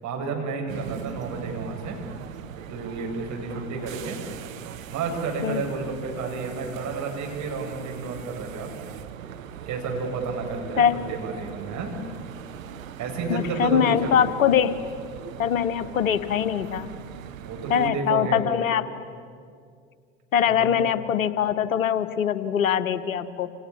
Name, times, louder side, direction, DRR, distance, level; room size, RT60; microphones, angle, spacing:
voice 1, 0.0-2.0 2.7-4.2 4.9-8.7 9.7-11.9 13.0-14.3 17.4-18.5 20.5-20.8, right 4 dB, 45° right, 2 dB, 7.7 m, -31 dB
sound 1, 0.7-17.9, right 9 dB, 75° right, 1.4 m, -40 dB
voice 2, 13.3-14.7 15.4-16.9 17.7-18.8 20.3-23.5, left 8 dB, 80° left, 13 dB, 1.3 m, -23 dB
29.5 x 27.5 x 7.2 m, 2.2 s
hypercardioid pair, 80°, 40 cm